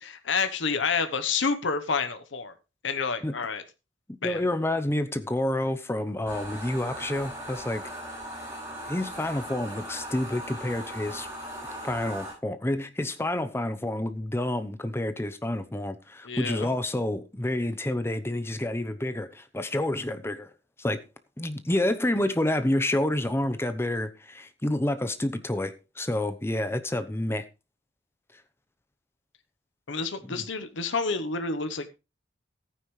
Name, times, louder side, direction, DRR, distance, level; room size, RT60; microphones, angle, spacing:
voice 1, 0.0-2.5 2.8-3.6 4.2-4.4 16.2-16.7 29.9-31.9, left 5 dB, 80° left, 1.0 m, -29 dB
voice 2, 4.1-7.8 8.9-11.3 11.8-20.5 20.8-21.0 21.4-27.4 30.2-30.4, left 1 dB, 15° left, 0.8 m, -29 dB
sound 1, 6.3-12.3, right 1 dB, 15° right, 7.6 m, -39 dB
14.5 x 9.4 x 3.2 m
head